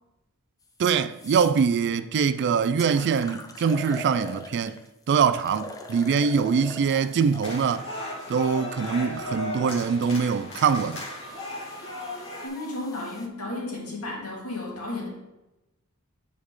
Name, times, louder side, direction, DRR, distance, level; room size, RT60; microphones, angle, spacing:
sound 1, 0.6-0.7 1.1-1.6 2.3-2.4 2.8-4.9 5.4-9.0 9.8-13.3, left 2 dB, 15° left, 0.6 m, -43 dB
voice 1, 0.8-4.8 5.1-7.9 8.3-11.0, right 6 dB, 50° right, 0.4 m, -23 dB
sound 2, 7.4-12.5, left 1 dB, 60° left, 1.8 m, -36 dB
voice 2, 12.4-15.1, left 2 dB, 80° left, 2.3 m, -33 dB
8.4 x 4.7 x 3.7 m
head